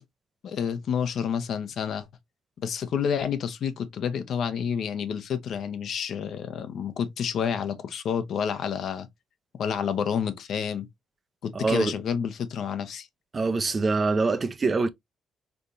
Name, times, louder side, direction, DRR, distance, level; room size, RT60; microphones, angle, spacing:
voice 1, 0.4-2.1 2.6-9.1 9.6-10.9 11.4-13.1, left 7 dB, 65° left, 0.8 m, -29 dB
voice 2, 11.5-11.9 13.3-14.9, right 3 dB, 35° right, 0.6 m, -24 dB
4.2 x 3.4 x 2.5 m
cardioid pair, 90°, 0 cm